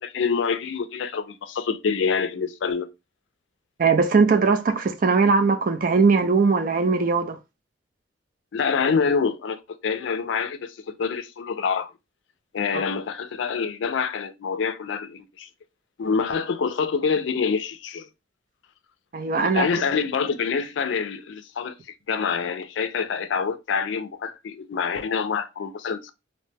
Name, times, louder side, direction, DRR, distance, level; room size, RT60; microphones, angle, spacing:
voice 1, 0.0-2.9 8.5-11.9 12.5-15.5 16.0-18.1 19.4-21.7 22.1-26.1, left 5 dB, 75° left, 0.4 m, -26 dB
voice 2, 3.8-7.4 12.7-12.8 19.1-19.7, right 4 dB, 45° right, 0.4 m, -20 dB
2.7 x 2.1 x 3.2 m
head